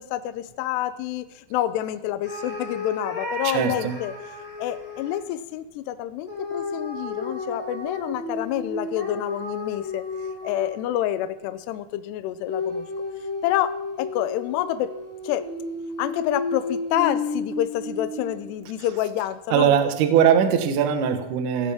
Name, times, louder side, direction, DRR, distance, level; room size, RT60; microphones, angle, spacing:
voice 1, 0.0-4.1 4.6-10.0 10.4-12.9 13.4-14.9 15.2-15.4 16.0-19.8, left 13 dB, 85° left, 11 dB, 2.4 m, -28 dB
sound 1, 2.2-5.2 6.3-11.0 12.5-18.6, left 3 dB, 15° left, 3.8 m, -32 dB
voice 2, 3.4-4.0 19.5-21.7, right 8 dB, 70° right, 6 dB, 1.9 m, -20 dB
18.0 x 15.5 x 3.6 m, 0.89 s
omnidirectional pair, 5.7 m